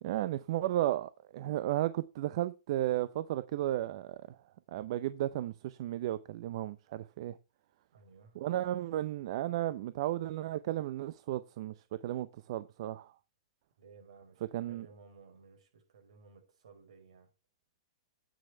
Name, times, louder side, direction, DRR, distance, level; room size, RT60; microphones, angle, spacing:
voice 1, 0.0-4.4 4.7-7.4 8.4-11.7 12.0-13.1 14.5-14.9, right 13 dB, 55° right, 0.6 m, -34 dB
voice 2, 7.9-8.4 13.8-17.3, right 5 dB, 75° right, 5.4 m, -57 dB
9.3 x 6.4 x 5.6 m
hypercardioid pair, 145°, 3 cm